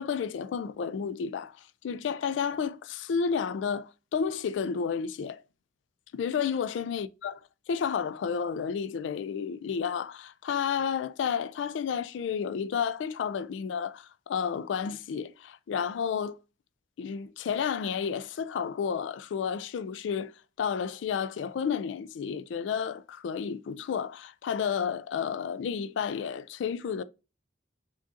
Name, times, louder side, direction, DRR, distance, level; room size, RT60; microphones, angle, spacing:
voice 1, 0.0-5.4 6.1-7.4 7.7-16.4 17.0-20.3 20.6-27.0, left 7 dB, 75° left, 0.3 m, -31 dB
6.3 x 2.5 x 2.5 m
head